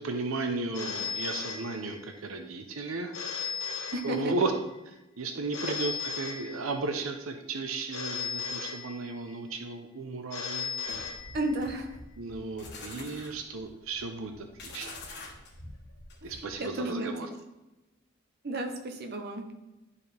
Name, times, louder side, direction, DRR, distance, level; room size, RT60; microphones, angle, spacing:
voice 1, 0.0-3.1 4.0-4.5 5.2-10.7 12.2-14.5 14.7-14.9 16.2-17.3, right 3 dB, 85° right, 5 dB, 0.8 m, -34 dB
Telephone, 0.7-2.2 3.1-4.6 5.5-7.0 7.9-9.4 10.3-11.8, left 6 dB, 85° left, 1.2 m, -37 dB
voice 2, 3.9-4.3 5.6-5.8 11.3-12.0 13.0-13.1 16.2-17.3 18.4-19.5, right 1 dB, 50° right, 3 dB, 0.9 m, -33 dB
sound 1, 10.9-16.6, left 2 dB, 55° left, 1.4 m, -46 dB
11.0 x 4.1 x 3.4 m, 1.0 s
head